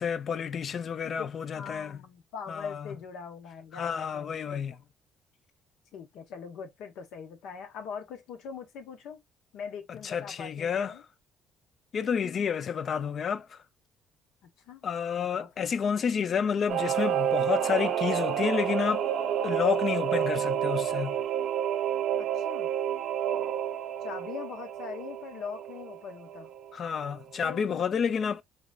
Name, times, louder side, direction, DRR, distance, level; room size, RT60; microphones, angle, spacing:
voice 1, 0.0-2.0 2.5-3.0 3.7-4.7 9.9-11.0 11.9-13.6 14.8-19.0 19.4-21.2 26.7-28.4, left 7 dB, 45° left, 0.4 m, -30 dB
voice 2, 1.5-4.9 5.9-9.2 9.5-11.0 14.7-14.8 15.1-15.5 22.2-22.7 24.0-26.5 27.4-28.0, left 6 dB, 80° left, 1.0 m, -42 dB
Singing / Musical instrument, 16.7-26.7 27.0-27.1, right 10 dB, 65° right, 0.6 m, -29 dB
4.0 x 3.2 x 2.3 m
cardioid pair, 135°, 0 cm